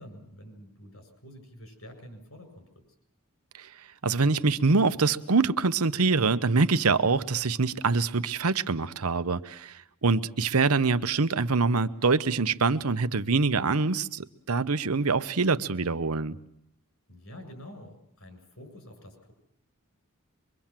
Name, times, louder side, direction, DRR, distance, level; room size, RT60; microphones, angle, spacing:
voice 1, 0.0-2.7 17.1-19.3, equal, 75° left, 7.2 m, -47 dB
voice 2, 4.0-16.4, right 4 dB, 85° right, 0.9 m, -25 dB
24.0 x 24.0 x 7.5 m
head